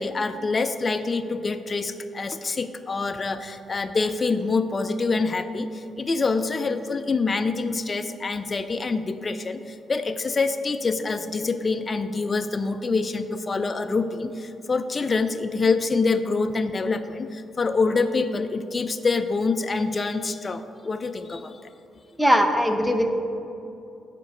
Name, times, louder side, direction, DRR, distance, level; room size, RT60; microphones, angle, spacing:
voice 1, 0.0-21.6, left 4 dB, 30° left, 9 dB, 0.4 m, -26 dB
voice 2, 22.2-23.1, equal, ahead, 4 dB, 0.7 m, -20 dB
7.3 x 5.2 x 6.7 m, 2.7 s
cardioid pair, 90°, 0 cm